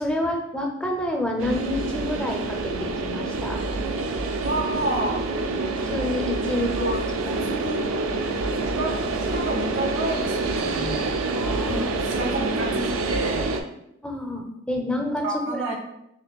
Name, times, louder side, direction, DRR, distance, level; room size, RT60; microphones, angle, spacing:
voice 1, 0.0-3.6 5.9-6.7 7.3-7.6 11.3-12.0 14.0-15.8, left 1 dB, 5° left, 2 dB, 0.4 m, -28 dB
sound 1, 1.4-13.6, right 3 dB, 75° right, 0.4 m, -27 dB
voice 2, 4.4-5.2 6.5-7.0 7.5-7.8 8.4-9.0 9.3-11.1 12.0-13.5 15.2-15.8, right 1 dB, 60° right, 1 dB, 1.0 m, -29 dB
6.0 x 2.5 x 2.2 m, 0.81 s
head